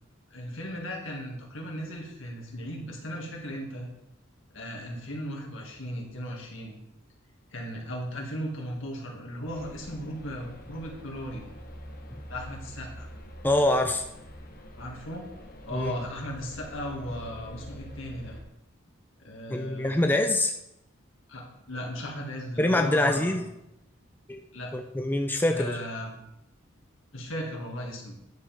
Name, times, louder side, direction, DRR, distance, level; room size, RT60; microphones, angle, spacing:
voice 1, 0.3-3.9 4.5-6.7 7.5-11.4 12.3-13.1 14.8-15.3 15.6-18.4 19.2-20.1 21.3-23.5 24.5-24.7 25.5-26.2 27.1-28.1, equal, 70° left, -1 dB, 2.2 m, -37 dB
sound 1, 9.4-18.4, equal, 45° left, 1.2 m, -45 dB
voice 2, 13.4-14.0 15.7-16.0 19.5-20.5 22.6-23.4 24.3-24.4 24.7-25.8, left 1 dB, 10° left, 4 dB, 0.5 m, -24 dB
10.5 x 7.6 x 3.6 m, 0.84 s
head